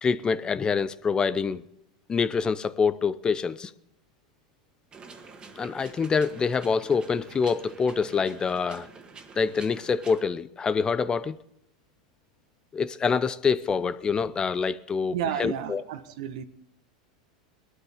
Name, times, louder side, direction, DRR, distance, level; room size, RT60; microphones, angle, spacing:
voice 1, 0.0-1.6 2.1-3.7 5.6-8.9 9.4-11.4 12.7-15.8, left 5 dB, 20° left, 0.6 m, -26 dB
sound 1, 4.9-10.2, right 4 dB, 25° right, 1.9 m, -47 dB
voice 2, 15.1-16.4, right 9 dB, 70° right, 1.3 m, -31 dB
20.0 x 12.5 x 3.5 m
hypercardioid pair, 105°, 4 cm